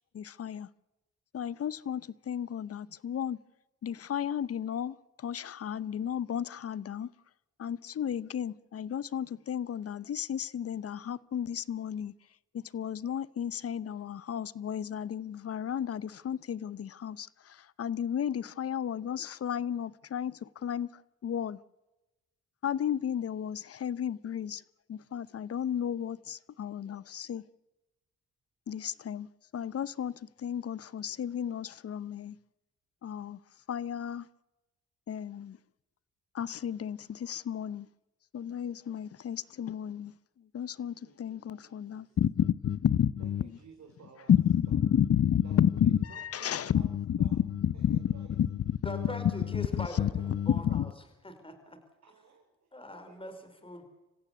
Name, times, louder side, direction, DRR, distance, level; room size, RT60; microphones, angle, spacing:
voice 1, 0.1-0.7 1.3-3.4 3.8-7.1 7.6-12.1 12.5-21.6 22.6-24.6 24.9-27.4 28.7-29.3 29.5-32.4 33.0-33.4 33.7-34.3 35.1-35.6 36.3-37.9 38.3-40.1 40.5-43.5 44.3-50.9, left 9 dB, 50° left, 0.8 m, -32 dB
voice 2, 41.0-42.2 43.2-44.3 44.7-44.8 45.4-47.4 47.7-48.3 49.0-50.7 52.0-53.8, right 6 dB, 60° right, 3.8 m, -56 dB
voice 3, 48.8-50.9 51.2-51.8 52.7-53.8, left 1 dB, 20° left, 4.9 m, -42 dB
26.5 x 15.5 x 8.4 m
supercardioid pair, 55°, 30 cm